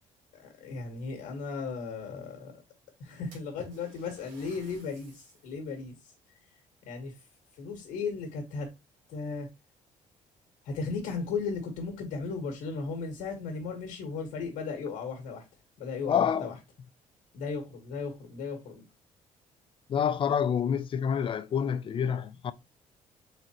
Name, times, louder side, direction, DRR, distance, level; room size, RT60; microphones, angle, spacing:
voice 1, 0.4-2.5 3.0-5.9 6.9-7.1 7.6-8.7 9.1-9.5 10.6-15.4 15.8-16.5 17.3-18.8, left 4 dB, 85° left, 1.5 m, -36 dB
Splash splatter, 3.3-5.6 6.1-6.2 7.1-8.2 8.5-9.0 9.8-9.9 10.3-10.4 12.6-12.7 13.0-13.1 13.7-13.8 14.2-14.3 15.0-15.6, right 3 dB, 90° right, 1.9 m, -56 dB
voice 2, 16.1-16.5 19.9-22.5, left 8 dB, 40° left, 0.4 m, -27 dB
4.1 x 3.9 x 3.0 m
cardioid pair, 105°, 13 cm